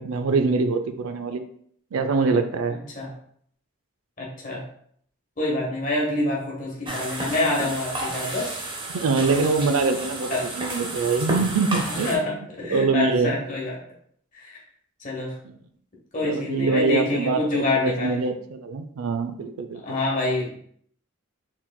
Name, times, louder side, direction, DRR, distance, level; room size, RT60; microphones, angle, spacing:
voice 1, 0.0-1.4 1.9-2.8 8.9-12.3 12.7-13.4 15.4-15.6 16.2-20.0, right 4 dB, 75° right, 8 dB, 0.4 m, -24 dB
voice 2, 4.2-4.6 5.4-8.6 10.3-10.5 11.9-13.8 14.3-14.6 15.0-15.3 16.1-18.2 19.8-20.6, left 2 dB, 35° left, -3 dB, 1.2 m, -26 dB
sound 1, 6.9-12.1, right 2 dB, 20° right, 0.6 m, -31 dB
4.6 x 3.8 x 2.2 m, 0.63 s
head